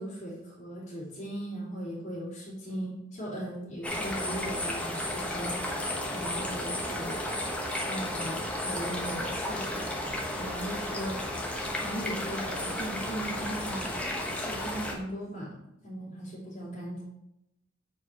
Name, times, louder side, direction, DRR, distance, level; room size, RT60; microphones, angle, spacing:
voice 1, 0.0-5.6 5.8-7.2 7.5-11.2 11.8-13.9 14.3-15.6 15.8-17.0, right 1 dB, 35° left, -6 dB, 2.8 m, -38 dB
sound 1, 3.8-14.9, left 1 dB, 5° left, 0.9 m, -33 dB
6.4 x 4.8 x 4.2 m, 0.85 s
head